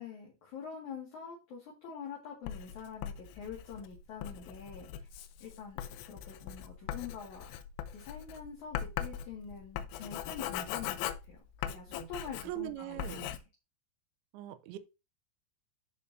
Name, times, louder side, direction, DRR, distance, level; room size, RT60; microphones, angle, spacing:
voice 1, 0.0-5.1 5.4-5.8 6.1-7.5 7.9-11.4 11.6-13.4, left 6 dB, 50° left, 2.8 m, -45 dB
Writing, 2.5-12.7 13.0-13.4, left 11 dB, 85° left, 3.4 m, -40 dB
voice 2, 12.4-13.3 14.3-14.8, right 15 dB, 85° right, 2.2 m, -41 dB
14.0 x 4.9 x 2.8 m
omnidirectional pair, 5.8 m